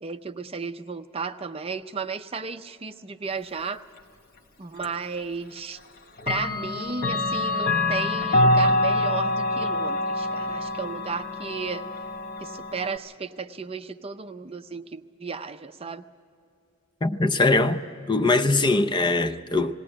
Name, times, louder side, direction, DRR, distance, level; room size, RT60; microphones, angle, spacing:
voice 1, 0.0-3.8 4.6-5.8 6.3-11.8 12.4-16.0, right 5 dB, 25° right, 0.6 m, -34 dB
Clock, 4.8-4.9 6.2-13.0, left 2 dB, 45° left, 1.1 m, -25 dB
voice 2, 17.0-17.8 18.1-19.7, left 2 dB, 20° left, 0.5 m, -21 dB
19.5 x 17.5 x 8.7 m
head